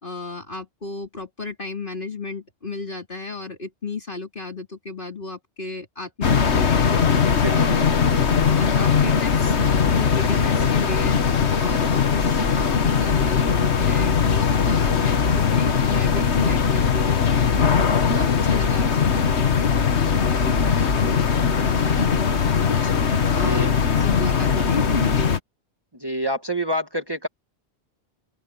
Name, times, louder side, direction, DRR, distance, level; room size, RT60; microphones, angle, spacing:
voice 1, 0.0-7.9 8.4-11.2 11.6-17.7 18.1-19.7 20.1-22.9 23.3-25.3, left 3 dB, 50° left, 3.9 m, -33 dB
sound 1, 6.2-25.4, left 6 dB, 75° left, 1.6 m, -20 dB
voice 2, 7.4-7.8 23.3-23.7 26.0-27.3, equal, 20° right, 1.6 m, -27 dB
open air
omnidirectional pair, 1.1 m